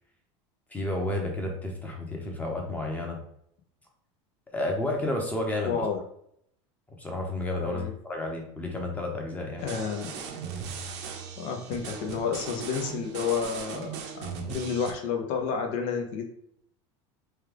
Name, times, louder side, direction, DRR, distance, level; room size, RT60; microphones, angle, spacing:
voice 1, 0.7-3.2 4.5-5.8 7.0-9.7, left 2 dB, 10° left, 1 dB, 0.8 m, -31 dB
voice 2, 5.6-6.0 7.6-7.9 9.6-10.2 11.4-16.2, left 6 dB, 60° left, 4 dB, 0.7 m, -30 dB
sound 1, 9.6-14.9, right 6 dB, 75° right, 0.8 m, -38 dB
3.3 x 2.3 x 3.3 m, 0.70 s
supercardioid pair, 120°, 15 cm